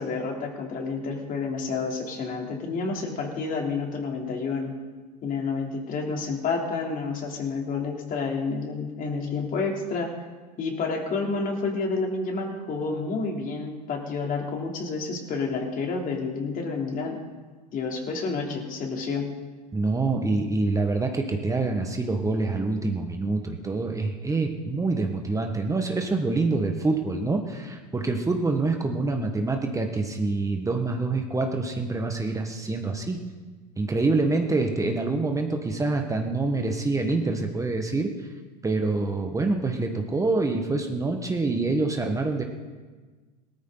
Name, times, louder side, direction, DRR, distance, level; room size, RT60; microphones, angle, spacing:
voice 1, 0.0-4.7 5.2-10.1 10.6-17.2 17.7-19.3, left 4 dB, 40° left, 1 dB, 3.1 m, -29 dB
voice 2, 19.7-33.2 33.8-38.3 38.6-42.4, right 3 dB, 15° right, 3 dB, 1.4 m, -26 dB
18.5 x 13.5 x 3.9 m, 1.4 s
hypercardioid pair, 85°, 21 cm